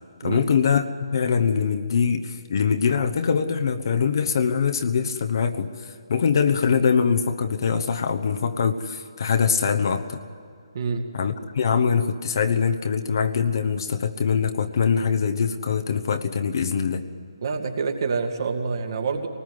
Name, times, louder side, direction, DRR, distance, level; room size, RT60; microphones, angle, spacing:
voice 1, 0.2-10.2 11.1-17.0, left 6 dB, 50° left, 7 dB, 1.1 m, -23 dB
voice 2, 10.7-11.1 17.4-19.3, right 5 dB, 50° right, 4 dB, 2.4 m, -27 dB
23.0 x 19.5 x 9.6 m, 2.4 s
figure-of-eight pair, 145°, 3 cm